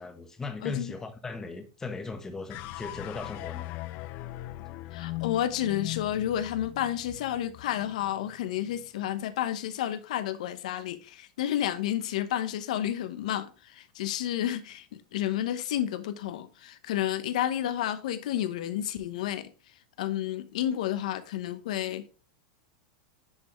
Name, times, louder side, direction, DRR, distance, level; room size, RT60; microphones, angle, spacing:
voice 1, 0.0-3.7, left 4 dB, 15° left, 1.2 m, -38 dB
voice 2, 0.6-0.9 4.9-14.9 15.1-19.5 20.0-22.1, left 11 dB, 75° left, 1.0 m, -31 dB
sound 1, 2.5-8.9, left 17 dB, 45° left, 0.5 m, -40 dB
10.5 x 3.5 x 3.2 m
supercardioid pair, 135°, 4 cm